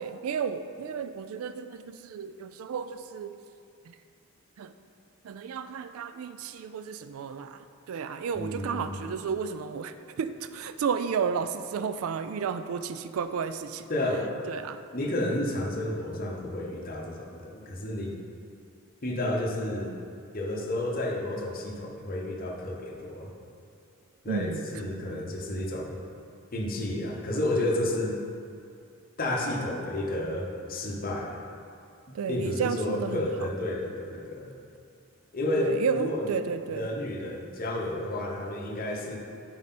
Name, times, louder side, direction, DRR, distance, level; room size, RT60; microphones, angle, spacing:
voice 1, 0.0-3.3 3.9-4.0 4.6-4.7 5.2-7.6 7.9-13.8 14.5-14.8 24.3-25.2 32.1-33.5 35.6-36.9, right 6 dB, 75° right, 11 dB, 0.3 m, -32 dB
voice 2, 8.3-9.1 13.9-14.3 14.9-18.1 19.0-19.9 20.3-23.3 24.2-25.9 26.5-28.2 29.2-31.4 32.3-34.6 35.3-36.3 36.7-39.2, left 1 dB, 40° left, -1 dB, 0.9 m, -31 dB
7.6 x 4.8 x 4.2 m, 2.4 s
head